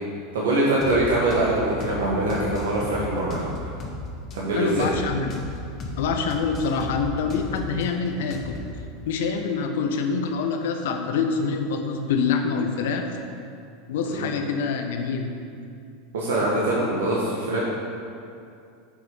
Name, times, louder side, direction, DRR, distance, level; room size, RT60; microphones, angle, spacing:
voice 1, 0.3-3.4 4.3-4.9 14.1-14.3 16.1-17.6, right 1 dB, 75° right, -5 dB, 1.6 m, -23 dB
sound 1, 0.8-1.0 1.3-1.5 1.8-2.0 2.3-4.0 4.3-4.4 4.8-5.0 5.3-5.5 5.8-6.0 6.3-7.8 8.3-8.7, left 2 dB, 40° left, 1.8 m, -35 dB
voice 2, 4.5-5.3 6.0-8.6 9.0-13.2 13.9-15.3, left 5 dB, 70° left, 4 dB, 1.0 m, -26 dB
10.0 x 5.8 x 5.5 m, 2.5 s
hypercardioid pair, 90°, 0 cm